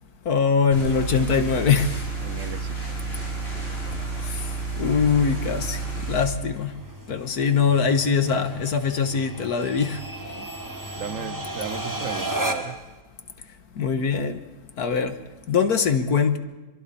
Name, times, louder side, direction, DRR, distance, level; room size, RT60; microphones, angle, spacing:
voice 1, 0.3-1.9 4.3-4.4 4.8-6.7 7.1-10.0 11.1-11.3 13.8-14.4 14.8-15.1 15.5-16.4, left 6 dB, 80° left, 8 dB, 1.9 m, -22 dB
sound 1, 0.7-6.2, right 4 dB, 40° left, 7.5 m, -30 dB
voice 2, 2.2-3.5 3.8-4.1 10.2-10.5 10.9-12.8, right 7 dB, 60° right, 12 dB, 1.1 m, -37 dB
sound 2, 2.6-12.9, right 1 dB, 15° right, 1.5 m, -35 dB
27.5 x 23.0 x 4.3 m, 1.2 s
omnidirectional pair, 1.6 m